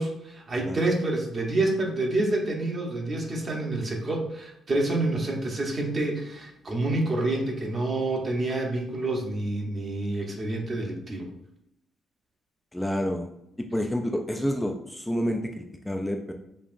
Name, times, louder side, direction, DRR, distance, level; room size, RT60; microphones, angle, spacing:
voice 1, 0.0-11.3, right 2 dB, 40° right, 0 dB, 0.9 m, -28 dB
voice 2, 12.7-13.3 13.7-16.3, equal, 5° left, 3 dB, 0.4 m, -29 dB
5.3 x 2.4 x 2.5 m, 0.81 s
cardioid pair, 85°, 0 cm